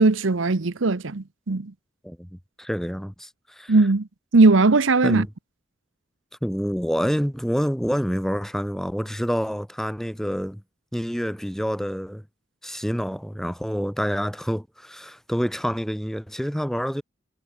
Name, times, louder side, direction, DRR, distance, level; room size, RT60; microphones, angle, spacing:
voice 1, 0.0-1.7 3.7-4.1 4.3-5.3, right 3 dB, 85° right, 0.9 m, -18 dB
voice 2, 2.0-3.8 5.0-5.3 6.4-10.6 10.9-12.2 12.6-17.0, equal, ahead, 5.0 m, -27 dB
head